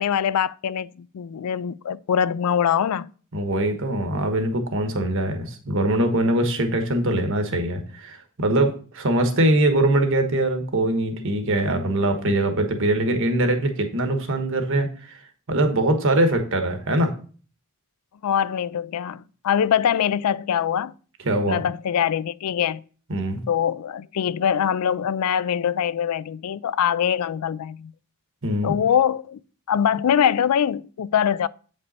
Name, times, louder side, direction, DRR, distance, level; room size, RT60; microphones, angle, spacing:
voice 1, 0.0-3.1 18.2-20.9 21.5-22.8 23.5-27.9 28.6-29.4 29.7-31.5, left 8 dB, 85° left, 0.4 m, -23 dB
voice 2, 3.3-15.2 15.5-17.1 21.2-21.6 23.1-23.4 28.4-28.7, right 1 dB, 60° right, 1.3 m, -22 dB
8.3 x 5.4 x 4.1 m
head